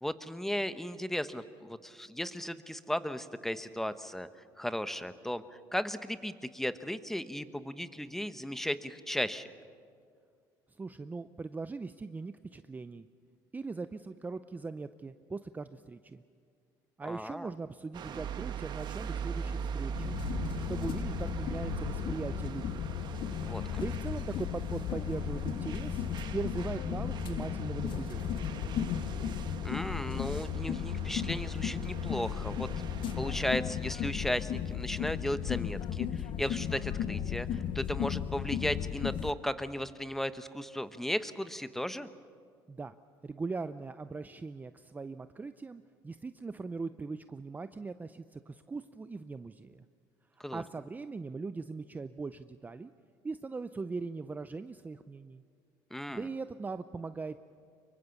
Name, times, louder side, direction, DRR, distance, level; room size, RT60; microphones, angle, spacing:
voice 1, 0.0-4.3 4.6-9.5 17.0-17.5 23.5-23.8 29.6-32.7 33.2-42.1 50.4-50.6 55.9-56.2, equal, 5° left, 12 dB, 1.0 m, -35 dB
voice 2, 10.8-13.1 13.5-16.2 17.0-20.2 20.7-22.9 23.8-26.0 26.3-28.4 42.7-43.0 43.2-49.8 50.3-52.9 53.2-55.4 56.1-57.4, right 4 dB, 20° right, 12 dB, 0.5 m, -40 dB
sound 1, 17.9-33.6, right 7 dB, 50° right, 1.3 m, -41 dB
sound 2, 20.0-39.3, left 9 dB, 60° left, 1.0 m, -35 dB
24.5 x 23.0 x 7.2 m, 2.2 s
supercardioid pair, 100°, 10 cm